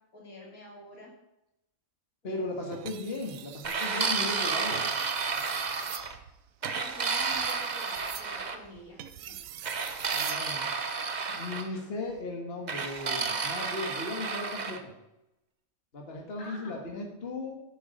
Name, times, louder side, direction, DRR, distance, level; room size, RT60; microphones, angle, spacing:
voice 1, 0.1-1.1 2.3-2.4 6.6-9.4 11.7-11.9 16.4-17.0, equal, 85° left, -2 dB, 3.7 m, -48 dB
voice 2, 2.2-4.9 10.1-10.7 11.3-14.9 15.9-17.6, left 2 dB, 45° left, 1 dB, 1.8 m, -37 dB
sound 1, 2.7-3.9 4.6-10.5 11.9-12.2, right 11 dB, 75° right, 1.0 m, -44 dB
sound 2, 3.6-6.2 6.6-8.6 9.6-11.7 12.7-14.8, right 4 dB, 35° right, 0.8 m, -31 dB
10.5 x 8.0 x 5.2 m, 0.90 s
omnidirectional pair, 1.5 m